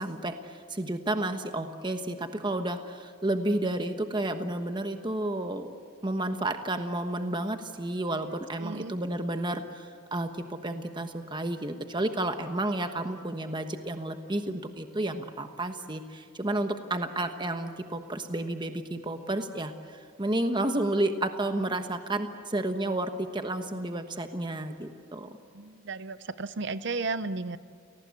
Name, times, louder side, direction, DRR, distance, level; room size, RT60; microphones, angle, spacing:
voice 1, 0.0-5.7 6.0-25.4, right 1 dB, 25° right, 7 dB, 1.2 m, -31 dB
voice 2, 8.6-8.9 25.5-27.6, right 3 dB, 60° right, 14 dB, 0.7 m, -34 dB
30.0 x 18.5 x 8.4 m, 2.2 s
head